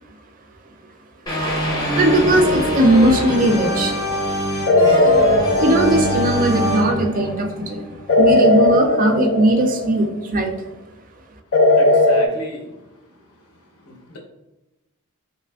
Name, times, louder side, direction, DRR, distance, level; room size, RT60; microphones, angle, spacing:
sound 1, 1.3-8.2, equal, 20° left, 0.6 m, -24 dB
voice 1, 2.0-3.9 5.6-7.8 8.2-10.5, right 1 dB, 40° right, 4 dB, 0.3 m, -18 dB
sound 2, 4.7-6.7 8.1-10.2 11.5-12.3, left 2 dB, 50° left, 0.3 m, -17 dB
voice 2, 11.7-12.7 13.8-14.2, left 1 dB, 75° left, 0 dB, 0.7 m, -34 dB
3.3 x 2.9 x 2.2 m, 0.98 s
head